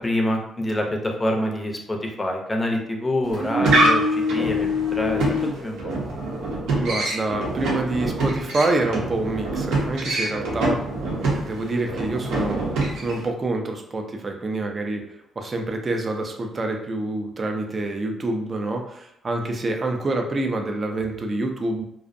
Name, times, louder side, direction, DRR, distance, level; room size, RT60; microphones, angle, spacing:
voice 1, 0.0-5.9, left 1 dB, 15° left, 2 dB, 0.5 m, -26 dB
sound 1, 3.2-13.3, right 1 dB, 90° right, 0.8 m, -24 dB
voice 2, 6.8-12.6 13.0-21.9, right 2 dB, 35° right, 3 dB, 0.4 m, -27 dB
2.5 x 2.0 x 2.5 m, 0.76 s
cardioid pair, 90°, 0 cm